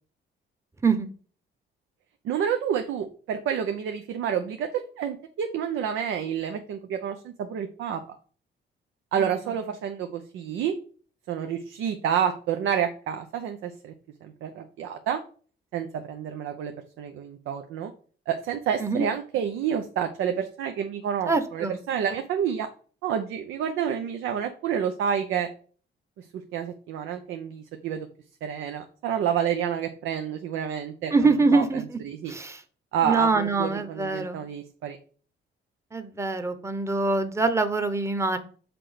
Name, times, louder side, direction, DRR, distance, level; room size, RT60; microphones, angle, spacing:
voice 1, 2.2-8.2 9.1-10.7 11.3-13.9 14.2-15.2 15.7-17.9 18.3-22.7 23.0-25.5 26.2-26.3 26.5-28.1 28.4-31.6 32.0-32.3 32.9-35.0, right 8 dB, 85° right, 6 dB, 0.7 m, -29 dB
voice 2, 21.3-21.8 31.1-32.0 32.3-32.6 33.0-34.4 35.9-38.4, right 3 dB, 15° right, 9 dB, 0.9 m, -24 dB
6.1 x 4.5 x 5.0 m, 0.42 s
cardioid pair, 90°, 20 cm